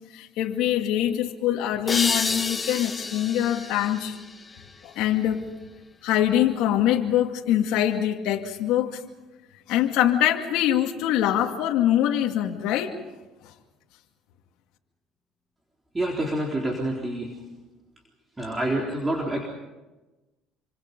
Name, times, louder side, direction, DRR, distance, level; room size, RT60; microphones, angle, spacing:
voice 1, 0.1-4.2 4.8-5.4 6.0-9.0 9.7-13.0 13.4-13.5, left 11 dB, 75° left, 2 dB, 2.2 m, -24 dB
sound 1, 1.9-5.3, left 4 dB, 20° left, 1.6 m, -30 dB
voice 2, 15.9-17.3 18.4-19.5, right 1 dB, 15° right, -1 dB, 4.0 m, -27 dB
28.0 x 26.0 x 5.4 m, 1.1 s
cardioid pair, 115°, 0 cm